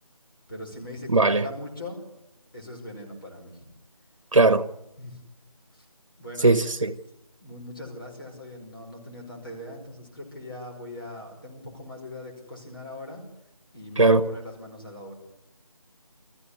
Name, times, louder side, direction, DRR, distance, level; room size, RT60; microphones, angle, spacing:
voice 1, 0.5-2.0 2.5-3.7 5.0-5.2 5.7-5.9 6.2-6.6 7.4-13.3 13.7-15.1, left 1 dB, 40° left, 5.2 m, -40 dB
voice 2, 1.1-1.4 4.3-4.6 6.4-6.9 14.0-14.3, right 3 dB, 60° right, 1.3 m, -19 dB
22.0 x 15.0 x 9.8 m
figure-of-eight pair, 175°, 18 cm